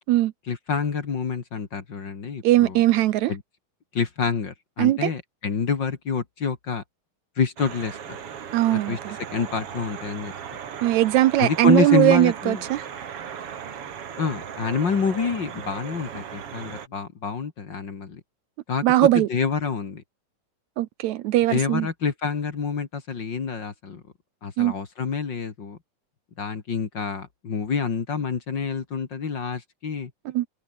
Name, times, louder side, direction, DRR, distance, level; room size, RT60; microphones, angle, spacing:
voice 1, 0.5-2.8 3.3-3.4 3.9-6.8 7.4-8.2 8.7-9.0 9.3-10.3 11.4-12.6 14.2-18.2 18.7-18.9 19.1-20.0 21.5-24.0 24.4-25.8 26.4-30.1, left 5 dB, 40° left, 2.4 m, -27 dB
voice 2, 2.4-3.3 4.8-5.1 8.5-9.2 10.8-12.8 18.8-19.3 20.8-21.9 24.6-24.7 30.3-30.5, right 15 dB, 75° right, 2.0 m, -20 dB
sound 1, 7.6-16.9, right 8 dB, 50° right, 2.7 m, -37 dB
omnidirectional pair, 3.5 m